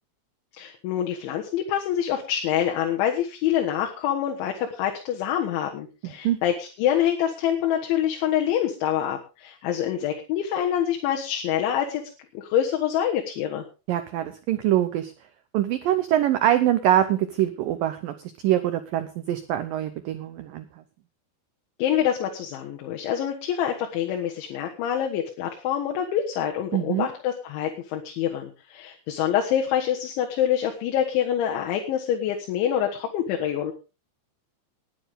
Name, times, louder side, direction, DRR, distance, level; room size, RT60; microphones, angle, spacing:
voice 1, 0.6-12.0 12.4-13.6 21.8-33.7, left 10 dB, 85° left, 1 dB, 3.8 m, -26 dB
voice 2, 6.0-6.4 13.9-15.1 15.5-20.7 26.7-27.1, right 12 dB, 90° right, 10 dB, 1.9 m, -24 dB
19.5 x 9.4 x 3.7 m, 0.32 s
omnidirectional pair, 5.2 m